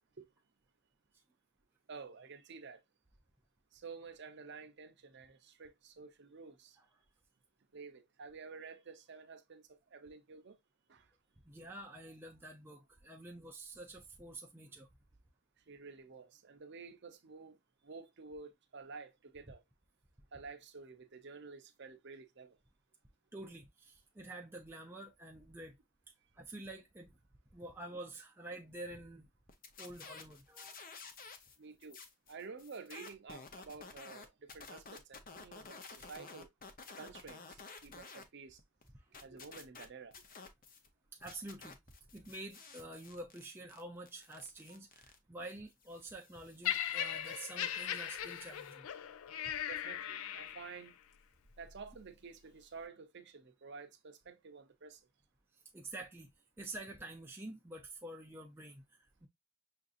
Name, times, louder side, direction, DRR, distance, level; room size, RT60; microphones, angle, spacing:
voice 1, 1.9-2.8 3.7-6.8 7.7-10.6 10.9-11.1 15.7-17.6 17.8-19.6 20.3-22.6 31.6-32.0 32.3-36.5 36.9-38.6 39.2-40.2 49.7-51.0 51.6-55.1, right 4 dB, 55° right, 0.6 m, -51 dB
voice 2, 11.5-14.9 23.3-25.8 26.4-27.2 27.5-29.3 29.8-30.8 38.9-39.0 41.1-41.8 42.1-48.9 55.7-56.3 56.6-59.3, right 2 dB, 10° right, 0.5 m, -48 dB
sound 1, 29.5-31.6 31.8-38.3 38.6-40.9 41.2-48.7, left 4 dB, 45° left, 0.6 m, -53 dB
Laughter, 46.6-50.9 51.7-51.9, left 10 dB, 85° left, 0.4 m, -39 dB
5.8 x 2.6 x 2.4 m
head